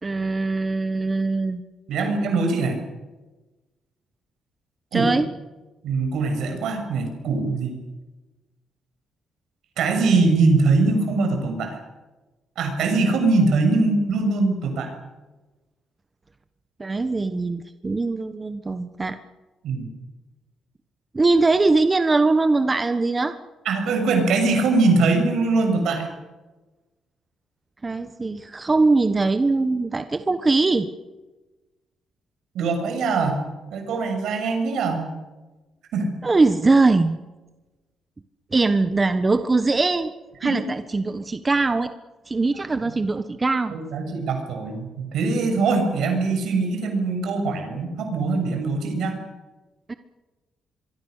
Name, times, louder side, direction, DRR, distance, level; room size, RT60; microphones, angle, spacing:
voice 1, 0.0-1.6 4.9-5.3 16.8-19.2 21.1-23.3 27.8-30.9 36.2-37.2 38.5-40.1 40.4-41.9 42.3-43.7 49.9-50.0, right 3 dB, 25° right, 9 dB, 1.3 m, -21 dB
voice 2, 1.9-2.8 4.9-5.1 5.8-7.7 9.8-11.8 12.6-14.9 19.6-19.9 23.6-26.1 32.5-33.4 33.7-35.1 35.9-36.1 40.4-40.6 43.7-49.2, right 3 dB, 75° right, 5 dB, 6.8 m, -22 dB
25.0 x 23.5 x 6.6 m, 1.2 s
cardioid pair, 90°, 0 cm